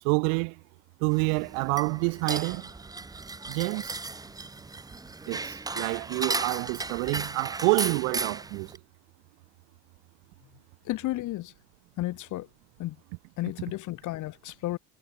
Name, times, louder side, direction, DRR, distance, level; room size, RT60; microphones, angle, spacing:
voice 1, 0.0-0.6 1.0-2.7 3.5-3.9 5.3-8.7, right 40 dB or more, 80° right, 0.8 m, -27 dB
sound 1, 1.1-8.8, right 3 dB, 10° right, 1.1 m, -36 dB
voice 2, 10.8-11.5 12.0-12.5 12.8-13.0 13.4-14.8, left 16 dB, 50° left, 1.4 m, -32 dB
cardioid pair, 125°, 38 cm